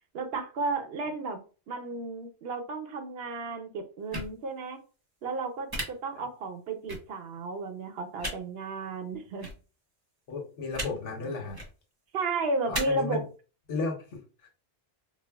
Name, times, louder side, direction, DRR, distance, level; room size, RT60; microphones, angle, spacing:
voice 1, 0.1-1.4 1.7-4.8 5.2-9.5 12.1-13.2, right 3 dB, 65° right, 7 dB, 0.8 m, -33 dB
sound 1, 4.1-4.3 5.7-5.8 6.9-7.0 8.2-8.3 9.4-9.5 10.7-10.9 11.5-11.7 12.7-12.8, right 1 dB, 25° right, 0.7 m, -33 dB
voice 2, 10.3-11.6 12.7-13.2 13.7-14.5, left 4 dB, 85° left, 2 dB, 1.2 m, -34 dB
4.3 x 2.0 x 2.2 m, 0.35 s
omnidirectional pair, 1.2 m